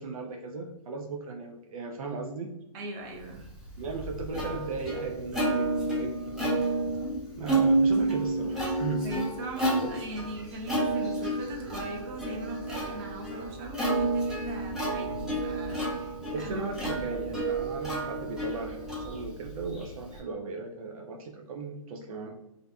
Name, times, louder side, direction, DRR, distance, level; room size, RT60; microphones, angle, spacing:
voice 1, 0.0-2.5 3.8-6.6 7.4-9.1 16.3-22.4, right 3 dB, 80° right, 1 dB, 0.4 m, -37 dB
voice 2, 2.7-3.5 9.0-16.7, right 1 dB, 40° right, 1 dB, 0.6 m, -39 dB
Plucked string instrument, 3.4-20.2, right 2 dB, 5° right, 0.7 m, -30 dB
2.5 x 2.3 x 2.2 m, 0.94 s
hypercardioid pair, 130°, 18 cm